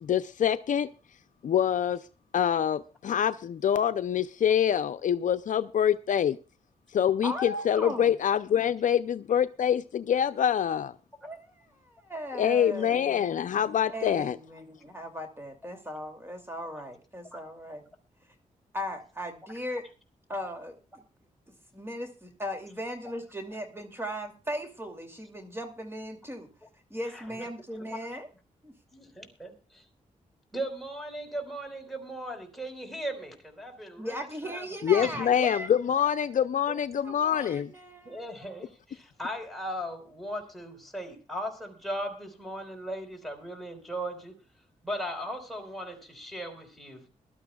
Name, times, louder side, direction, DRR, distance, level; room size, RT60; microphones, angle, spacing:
voice 1, 0.0-0.9 1.4-2.0 2.3-6.4 6.9-10.9 12.4-14.4 34.8-37.7, left 9 dB, 70° left, 0.5 m, -25 dB
voice 2, 7.2-8.2 11.2-13.3 13.9-17.8 18.7-19.9 20.3-21.0 21.5-26.5 26.9-28.3 28.6-28.7 34.0-35.7 37.0-38.2, equal, 15° right, 2.6 m, -37 dB
voice 3, 27.1-27.5 28.9-29.8 30.5-34.7 35.0-35.3 36.7-36.8 38.0-44.3 44.8-47.1, equal, ahead, 4.3 m, -38 dB
22.0 x 12.5 x 2.3 m
cardioid pair, 80°, 14 cm